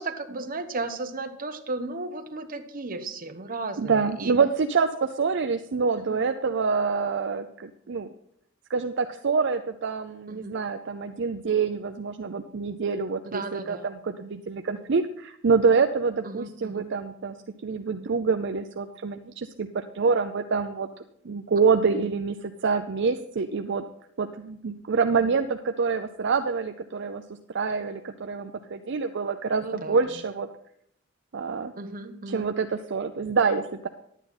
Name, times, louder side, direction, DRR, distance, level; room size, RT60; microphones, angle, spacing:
voice 1, 0.0-4.3 6.1-6.2 10.3-10.6 13.2-13.9 16.2-16.8 21.9-22.0 25.2-25.3 29.6-30.0 31.8-32.5, right 3 dB, 45° right, 7 dB, 1.0 m, -35 dB
voice 2, 3.8-8.1 8.7-17.4 17.6-20.9 21.2-23.8 24.2-27.2 27.5-30.5 31.3-31.7 32.3-33.9, right 5 dB, 60° right, 7 dB, 0.5 m, -26 dB
11.0 x 9.0 x 4.2 m, 0.73 s
head